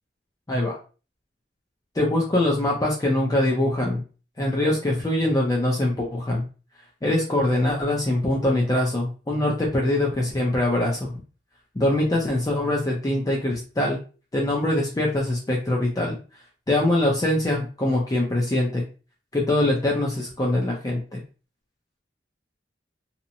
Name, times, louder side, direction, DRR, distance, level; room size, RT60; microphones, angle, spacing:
voice 1, 0.5-0.8 1.9-4.0 4.4-6.4 7.0-11.1 11.7-14.0 14.3-16.2 16.7-18.8 19.3-21.2, left 1 dB, 20° left, -2 dB, 0.5 m, -23 dB
2.8 x 2.1 x 2.5 m, 0.35 s
head